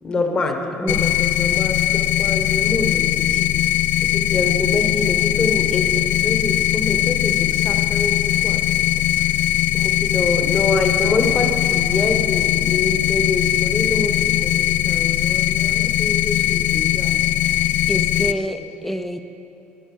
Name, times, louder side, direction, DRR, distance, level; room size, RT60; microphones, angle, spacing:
voice 1, 0.0-3.5 4.0-8.6 9.7-17.2 17.9-18.4, left 2 dB, 25° left, 4 dB, 1.3 m, -26 dB
voice 2, 0.6-1.2 17.5-19.2, equal, 5° left, 8 dB, 0.6 m, -28 dB
sound 1, 0.9-18.3, left 13 dB, 65° left, 0.4 m, -20 dB
14.0 x 11.0 x 7.2 m, 2.7 s
cardioid pair, 170°, 4 cm